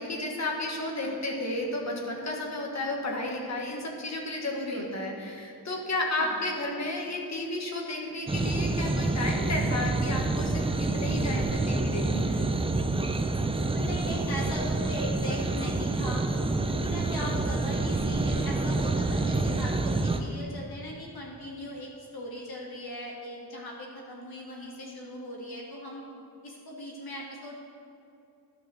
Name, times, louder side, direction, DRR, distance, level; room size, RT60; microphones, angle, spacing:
voice 1, 0.0-12.4, left 2 dB, 45° left, 0 dB, 1.6 m, -32 dB
voice 2, 4.7-5.1 6.2-6.6 13.7-16.2 16.7-26.0 26.4-27.5, left 1 dB, 70° left, -2 dB, 1.8 m, -39 dB
sound 1, 8.3-20.2, right 2 dB, 15° right, 0.4 m, -27 dB
12.5 x 5.8 x 6.3 m, 2.7 s
wide cardioid pair, 180°, 38 cm